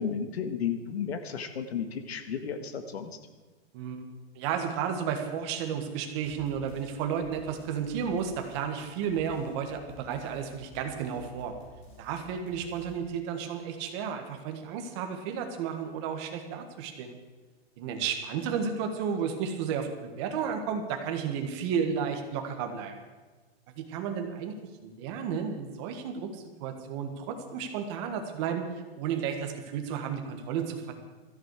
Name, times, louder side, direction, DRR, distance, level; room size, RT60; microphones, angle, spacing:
voice 1, 0.0-3.1, left 7 dB, 80° left, 8 dB, 1.9 m, -33 dB
voice 2, 3.7-4.0 4.3-11.5 12.0-17.2 17.8-23.0 23.8-24.6 24.8-28.7 29.0-30.9, right 7 dB, 25° right, 5 dB, 1.6 m, -32 dB
sound 1, 6.2-13.0, right 1 dB, 20° left, 3.8 m, -53 dB
16.5 x 14.0 x 4.8 m, 1.3 s
hypercardioid pair, 170°, 31 cm